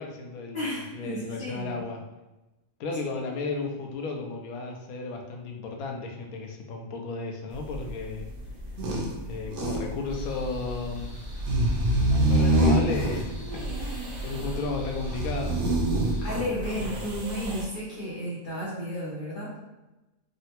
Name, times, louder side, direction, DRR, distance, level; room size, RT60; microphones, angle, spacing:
voice 1, 0.0-2.0 2.8-8.3 8.8-8.9 9.3-11.1 12.2-15.6 16.8-17.1, left 3 dB, 85° left, 2 dB, 1.1 m, -34 dB
voice 2, 0.5-1.8 16.2-19.5, left 1 dB, 50° left, -7 dB, 0.7 m, -33 dB
sound 1, 7.5-17.6, right 1 dB, 75° right, 1.1 m, -27 dB
sound 2, 10.1-16.3, right 1 dB, 40° right, 0.6 m, -39 dB
3.7 x 2.1 x 2.8 m, 1.0 s
omnidirectional pair, 1.5 m